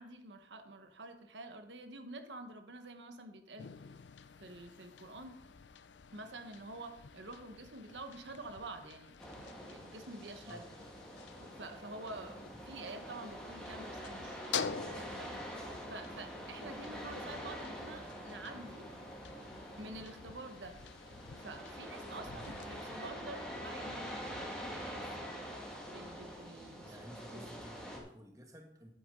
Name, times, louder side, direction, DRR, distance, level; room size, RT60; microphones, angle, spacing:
voice 1, 0.0-3.7 4.4-5.4 6.1-9.1 9.6-10.6 11.4-18.9 19.8-20.8 21.3-25.5 25.9-27.0 27.3-27.7, right 2 dB, 85° right, 6 dB, 1.1 m, -48 dB
sound 1, 3.6-23.1, left 6 dB, 85° left, 0.6 m, -48 dB
sound 2, 9.2-28.0, equal, 5° left, 1.8 m, -46 dB
voice 2, 10.4-10.8 12.5-12.6 22.3-22.5 26.8-28.9, equal, 20° right, 3 dB, 1.3 m, -53 dB
11.5 x 8.7 x 3.8 m, 0.76 s
head